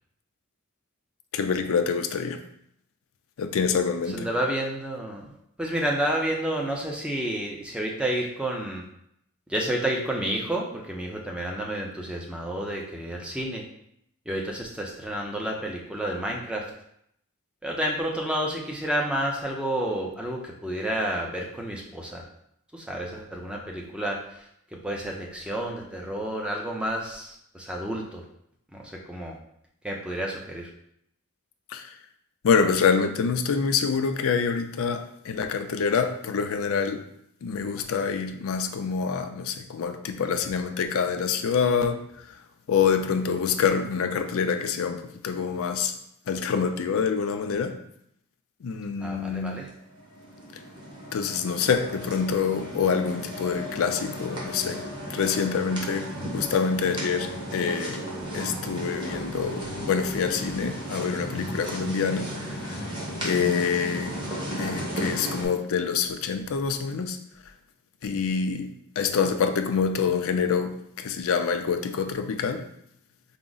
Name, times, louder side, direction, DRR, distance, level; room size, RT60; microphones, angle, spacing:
voice 1, 1.3-2.4 3.4-4.3 31.7-32.0 32.4-37.0 37.4-42.3 42.7-45.9 46.3-47.8 48.6-49.6 51.1-54.8 55.1-56.1 56.3-58.0 58.3-62.8 63.2-64.2 64.6-67.2 68.0-68.7 69.0-72.7, left 6 dB, 65° left, 7 dB, 0.4 m, -26 dB
voice 2, 4.1-5.3 5.6-8.8 9.5-13.6 14.3-16.7 17.6-22.3 22.7-28.2 28.7-29.3 29.8-30.7 49.0-49.7, right 1 dB, 5° right, -1 dB, 0.5 m, -30 dB
sound 1, 49.7-65.5, equal, 20° right, 1.0 m, -35 dB
4.7 x 2.0 x 3.9 m, 0.73 s
head